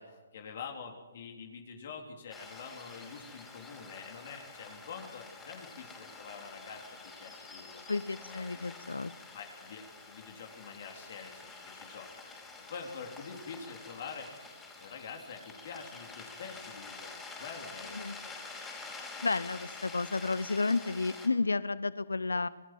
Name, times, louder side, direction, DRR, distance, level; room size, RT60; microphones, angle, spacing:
voice 1, 0.0-6.8 7.2-7.9 8.2-8.7 9.3-14.3 14.8-17.1 17.4-18.4, left 5 dB, 55° left, 2 dB, 3.6 m, -46 dB
sound 1, 2.3-21.3, left 3 dB, 10° left, 5.1 m, -48 dB
voice 2, 7.9-9.1 17.9-18.2 19.2-22.5, left 3 dB, 90° left, 17 dB, 0.7 m, -31 dB
27.0 x 19.5 x 7.8 m, 1.3 s
hypercardioid pair, 145°, 0 cm